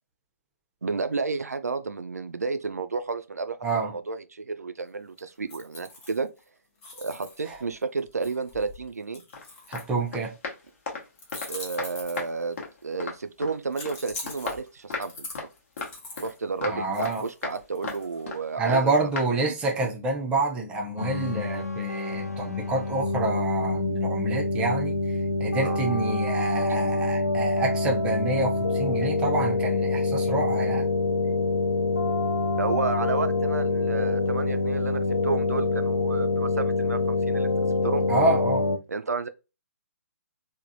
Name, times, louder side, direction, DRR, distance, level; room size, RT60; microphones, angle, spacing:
voice 1, 0.8-6.3 7.0-9.2 11.5-12.6 12.8-15.3 16.2-18.9 19.3-19.4 25.6-25.8 29.0-29.1 32.6-37.5 37.8-38.1 38.9-39.3, right 4 dB, 80° right, 0.4 m, -31 dB
sound 1, 5.2-6.4 6.8-10.2 11.2-12.6 13.7-16.4 16.9-18.2, left 2 dB, 20° left, 0.7 m, -43 dB
sound 2, 9.3-9.4 9.7-9.9 10.1-11.5 11.8-12.3 12.6-13.5 13.8-14.0 14.3-15.1 15.3-15.5 15.8-16.3 16.6-17.2 17.4-17.6 17.8-18.4 18.7-18.8 19.1-19.3, left 4 dB, 50° left, 1.0 m, -35 dB
voice 2, 9.7-10.3 16.7-17.2 18.6-25.0 25.4-30.9 38.1-38.6, right 2 dB, 15° right, 0.5 m, -27 dB
sound 3, 21.0-38.8, left 3 dB, 80° left, 0.5 m, -26 dB
3.3 x 2.1 x 2.6 m
figure-of-eight pair, 130°, 8 cm